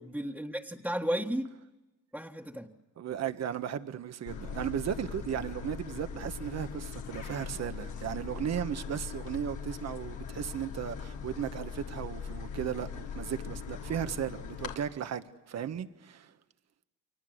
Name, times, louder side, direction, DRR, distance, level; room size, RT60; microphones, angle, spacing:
voice 1, 0.0-1.5 2.1-2.7, right 1 dB, 5° right, 1.7 m, -33 dB
voice 2, 3.0-16.3, right 9 dB, 60° right, 1.5 m, -36 dB
sound 1, 4.3-14.7, left 6 dB, 85° left, 3.5 m, -41 dB
30.0 x 24.0 x 8.0 m
cardioid pair, 90°, 30 cm